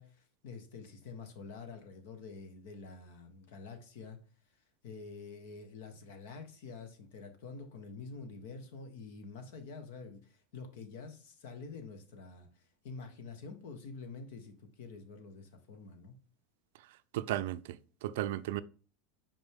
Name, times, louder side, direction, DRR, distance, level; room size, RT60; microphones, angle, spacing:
voice 1, 0.0-4.2 4.8-16.1, left 4 dB, 75° left, 1.3 m, -47 dB
voice 2, 17.1-18.6, right 14 dB, 75° right, 0.4 m, -35 dB
5.3 x 5.2 x 3.6 m
supercardioid pair, 110°, 0 cm